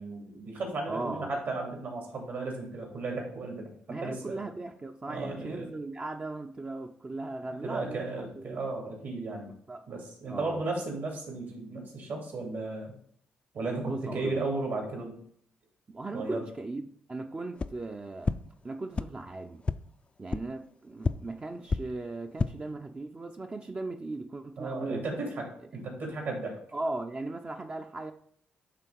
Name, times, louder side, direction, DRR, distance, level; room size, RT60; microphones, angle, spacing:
voice 1, 0.0-3.7 4.0-4.4 5.1-5.7 7.5-9.5 9.9-12.9 13.5-15.2 16.1-16.4 24.6-25.5 25.7-26.6, right 3 dB, 65° right, 2.6 m, -35 dB
voice 2, 0.9-1.4 3.9-8.6 9.5-9.9 10.3-10.6 13.8-14.4 15.9-16.8 17.1-18.4 18.6-19.6 20.2-25.0 26.7-28.1, right 2 dB, 30° right, 0.6 m, -38 dB
sound 1, 17.6-17.7 18.2-18.3 18.9-19.0 19.6-19.7 20.3-20.4 21.0-21.1 21.7-21.8 22.2-22.5, left 4 dB, 30° left, 0.4 m, -27 dB
8.2 x 3.5 x 4.7 m
supercardioid pair, 60°, 4 cm